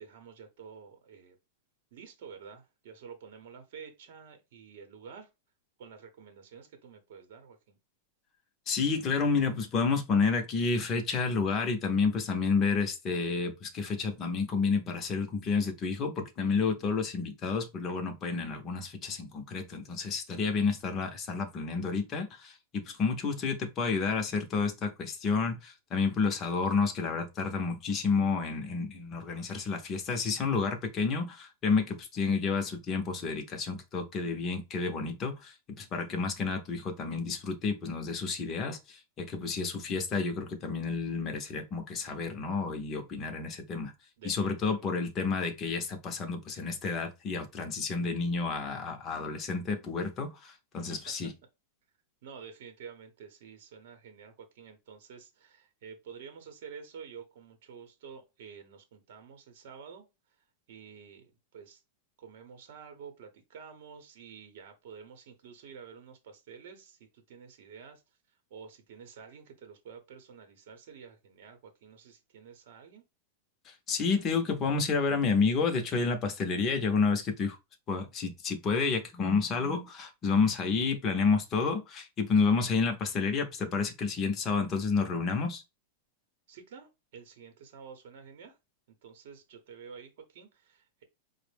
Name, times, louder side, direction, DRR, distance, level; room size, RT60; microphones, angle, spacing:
voice 1, 0.0-1.4 1.9-5.3 5.8-7.8 44.2-45.0 50.9-51.1 52.2-60.0 60.7-61.8 62.2-68.0 68.5-73.0 86.5-88.6 89.0-91.0, right 6 dB, 55° right, 0.8 m, -49 dB
voice 2, 8.7-43.9 44.2-51.3 73.7-77.6 77.9-85.6, left 4 dB, 20° left, 0.6 m, -30 dB
5.2 x 2.0 x 3.3 m
supercardioid pair, 175°, 0 cm